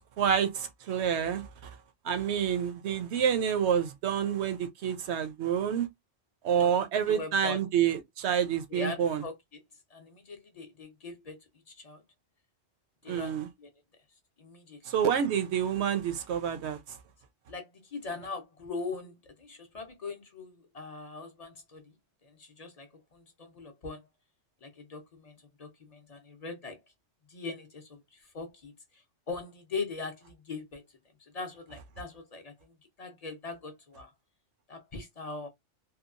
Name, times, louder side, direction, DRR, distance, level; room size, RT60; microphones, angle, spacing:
voice 1, 0.0-1.8 2.0-5.9 6.4-9.2 13.1-13.5 14.8-17.0, right 8 dB, 70° right, 0.8 m, -28 dB
voice 2, 6.5-7.6 8.7-9.4 9.9-11.4 11.8-12.0 13.0-13.7 14.4-14.8 17.5-21.8 22.2-24.0 24.6-26.8 27.3-28.7 29.3-30.8 31.3-32.5 33.0-34.1 34.7-35.5, left 4 dB, 45° left, 0.6 m, -41 dB
2.9 x 2.2 x 2.4 m
omnidirectional pair, 1.2 m